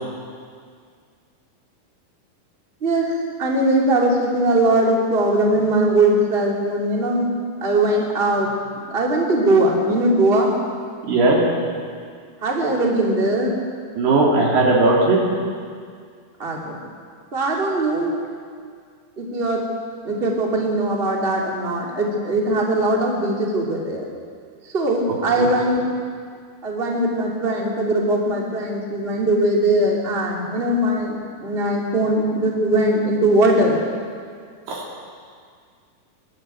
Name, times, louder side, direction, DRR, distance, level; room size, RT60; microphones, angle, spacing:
voice 1, 2.8-7.3 7.6-8.5 8.9-10.5 12.4-13.5 16.4-16.7 17.3-18.1 19.2-19.7 20.0-24.1 24.6-25.8 26.6-33.8, right 1 dB, 15° right, -1 dB, 2.5 m, -20 dB
voice 2, 11.1-11.4 14.0-15.2 25.4-25.5 34.7-34.8, right 2 dB, 85° right, -3 dB, 5.4 m, -17 dB
23.0 x 12.5 x 9.0 m, 2.1 s
omnidirectional pair, 4.5 m